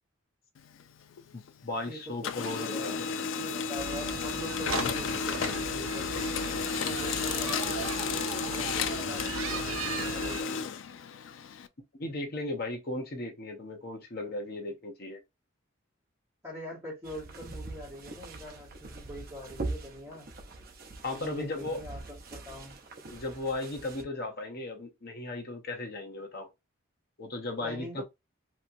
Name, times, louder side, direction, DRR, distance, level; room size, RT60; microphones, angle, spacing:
Printer, 0.6-1.8 2.1-11.7, left 6 dB, 65° left, 0.3 m, -33 dB
voice 1, 1.3-3.0 12.0-15.2 21.0-21.8 23.1-26.5 27.2-28.0, left 2 dB, 50° left, 0.8 m, -36 dB
voice 2, 1.8-6.3 6.8-9.2 9.5-10.7 16.4-20.3 21.1-22.8 27.6-28.0, equal, 15° right, 1.6 m, -43 dB
sound 1, 3.8-10.4, right 7 dB, 80° right, 0.4 m, -38 dB
sound 2, 17.0-24.0, right 2 dB, 45° right, 0.7 m, -42 dB
2.9 x 2.8 x 2.5 m
head